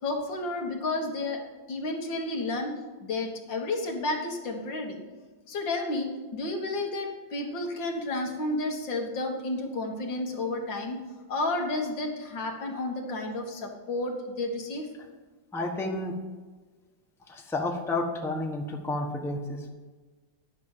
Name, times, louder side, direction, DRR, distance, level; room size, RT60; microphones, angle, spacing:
voice 1, 0.0-5.0 5.5-11.0 11.3-14.9, left 2 dB, 85° left, 1 dB, 2.4 m, -31 dB
voice 2, 15.5-16.2 17.3-19.7, left 2 dB, ahead, 1 dB, 1.0 m, -31 dB
10.5 x 6.3 x 7.3 m, 1.3 s
omnidirectional pair, 2.0 m